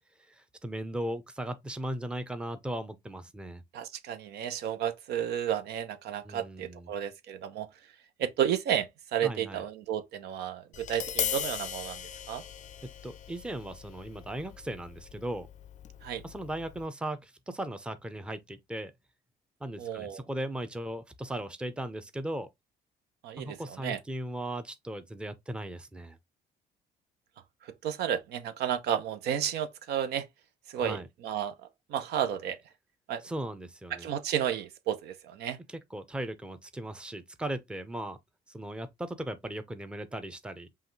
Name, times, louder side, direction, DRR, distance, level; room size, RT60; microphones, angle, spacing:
voice 1, 0.3-3.6 6.2-6.9 9.2-9.6 12.8-15.5 16.2-18.9 19.6-22.5 23.4-26.2 30.8-31.1 33.2-34.1 35.7-38.2 38.5-40.7, right 1 dB, 5° right, 0.6 m, -37 dB
voice 2, 3.7-7.7 8.2-12.0 12.3-12.4 16.0-16.2 19.8-20.2 23.2-23.6 23.8-24.0 27.6-30.3 30.7-31.5 31.9-32.6 33.1-33.2 34.0-35.6, right 9 dB, 75° right, 0.7 m, -32 dB
Tap, 10.7-16.9, left 10 dB, 45° left, 0.5 m, -39 dB
5.6 x 2.4 x 3.1 m
cardioid pair, 110°, 17 cm